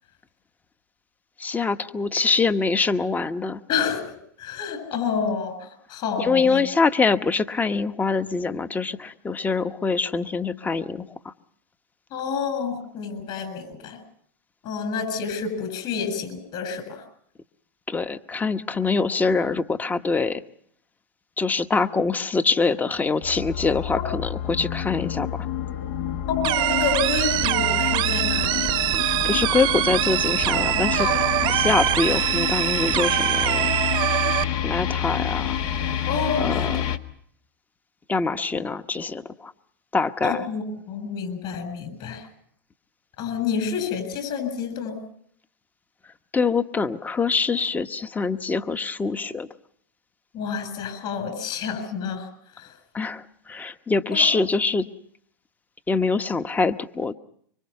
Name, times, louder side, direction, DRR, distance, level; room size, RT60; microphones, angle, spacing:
voice 1, 1.4-3.6 6.2-11.3 17.9-20.4 21.4-25.5 28.9-31.2 31.5-33.7 34.6-35.6 36.4-37.0 38.1-39.5 39.9-40.5 46.3-49.5 52.9-54.8 55.9-57.1, left 4 dB, 15° left, 11 dB, 1.0 m, -24 dB
voice 2, 3.7-6.6 12.1-14.0 14.6-17.0 23.9-24.1 26.3-29.3 31.0-31.4 36.1-36.7 40.2-42.2 43.2-45.0 50.3-52.3 52.6-52.7 54.1-54.3, left 6 dB, 45° left, 10 dB, 7.4 m, -29 dB
sound 1, 23.2-37.0, left 9 dB, 65° left, 1.5 m, -28 dB
sound 2, 26.4-34.4, right 16 dB, 45° right, 0.9 m, -23 dB
26.0 x 24.0 x 5.7 m, 0.67 s
hypercardioid pair, 115°, 11 cm